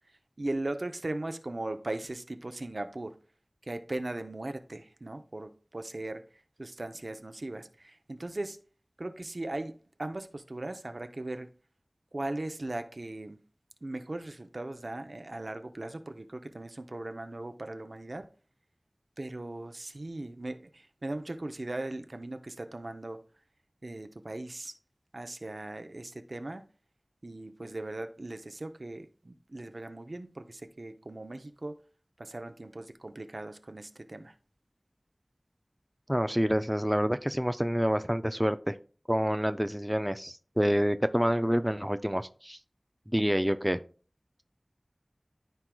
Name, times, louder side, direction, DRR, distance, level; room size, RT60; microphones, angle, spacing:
voice 1, 0.4-3.1 3.6-6.2 6.6-8.6 9.0-11.5 12.1-13.4 13.8-18.3 19.2-23.2 23.8-24.7 25.1-26.7 27.2-31.8 32.2-34.3, right 2 dB, 65° right, 0.7 m, -38 dB
voice 2, 36.1-38.8 39.1-42.6 43.1-43.8, equal, 10° right, 0.4 m, -27 dB
13.5 x 4.6 x 2.3 m
wide cardioid pair, 45°, 0 cm